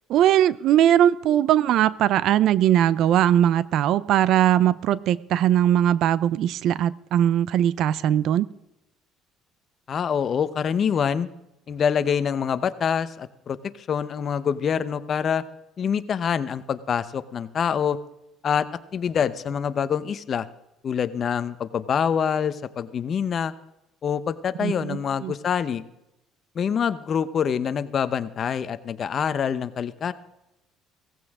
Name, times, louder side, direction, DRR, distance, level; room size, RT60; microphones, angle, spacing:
voice 1, 0.1-8.5 24.6-25.3, right 11 dB, 65° right, 19 dB, 0.5 m, -20 dB
voice 2, 9.9-11.3 11.7-15.4 15.8-18.0 18.4-18.7 18.9-20.5 20.8-23.5 24.0-25.8 26.5-30.1, left 7 dB, 40° left, 13 dB, 0.8 m, -25 dB
17.0 x 15.0 x 3.7 m, 0.91 s
cardioid pair, 115°, 0 cm